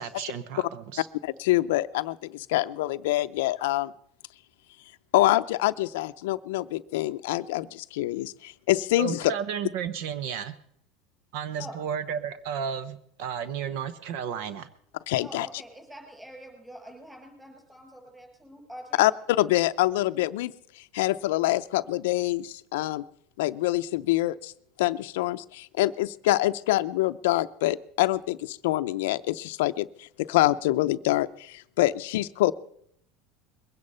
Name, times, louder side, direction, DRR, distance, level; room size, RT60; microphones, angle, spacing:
voice 1, 0.0-1.1 9.0-10.5 11.3-14.7, right 8 dB, 70° right, 14 dB, 0.9 m, -33 dB
voice 2, 1.2-3.9 5.1-9.3 15.1-15.5 19.0-20.5 20.9-23.0 23.4-24.5 24.8-32.5, left 16 dB, 85° left, 12 dB, 0.5 m, -25 dB
voice 3, 15.2-19.0, equal, 5° right, 2 dB, 5.8 m, -45 dB
22.0 x 9.8 x 5.5 m, 0.69 s
supercardioid pair, 130°, 0 cm